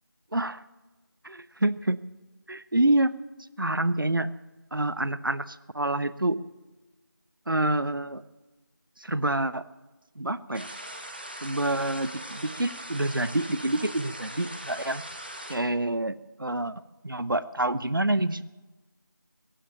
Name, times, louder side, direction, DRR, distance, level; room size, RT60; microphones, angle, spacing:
voice 1, 0.3-0.6 1.2-2.0 2.5-3.2 3.6-4.3 4.7-6.4 7.5-8.2 9.0-9.6 10.2-10.7 11.4-15.0 15.5-16.7 17.0-18.4, right 1 dB, 75° right, 16 dB, 0.8 m, -27 dB
sound 1, 10.5-15.6, right 1 dB, 30° right, 1.5 m, -40 dB
16.0 x 10.0 x 8.9 m, 1.1 s
figure-of-eight pair, 175°, 11 cm